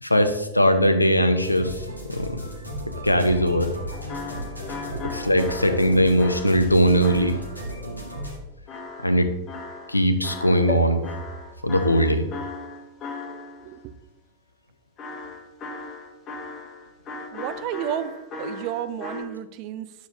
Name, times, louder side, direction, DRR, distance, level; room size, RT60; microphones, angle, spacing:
voice 1, 0.0-2.4 2.9-3.7 5.1-7.4 9.0-9.3 9.9-11.1 11.6-12.3, equal, 85° left, 9 dB, 0.6 m, -20 dB
sound 1, 1.4-8.4, equal, 90° right, 1.3 m, -35 dB
sound 2, 3.9-7.7 8.7-10.8 11.0-13.8 15.0-19.2, left 3 dB, 30° left, 1.1 m, -37 dB
sound 3, 10.7-14.3 14.9-15.0 15.2-15.3, left 3 dB, 10° left, 1.3 m, -39 dB
voice 2, 13.6-13.9 17.3-19.9, right 11 dB, 40° right, 12 dB, 0.5 m, -32 dB
10.0 x 6.8 x 2.6 m, 0.94 s
figure-of-eight pair, 90°, 0 cm